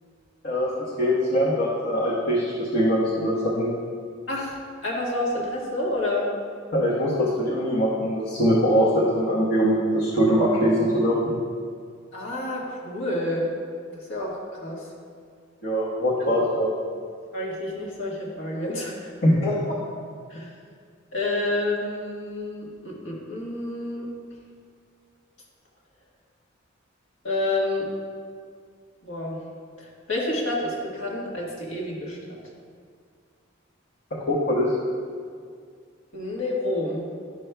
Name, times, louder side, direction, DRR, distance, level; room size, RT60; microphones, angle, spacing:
voice 1, 0.4-3.7 6.7-11.3 15.6-16.7 19.2-19.8 34.3-34.7, equal, 50° left, -7 dB, 1.1 m, -22 dB
voice 2, 4.3-6.3 12.1-13.5 14.1-14.9 16.3-16.4 17.3-19.1 20.3-20.5 21.1-24.1 27.2-27.9 29.0-29.4 29.8-32.4 36.1-37.0, left 1 dB, 70° left, -4 dB, 1.5 m, -29 dB
11.0 x 6.3 x 2.2 m, 2.1 s
head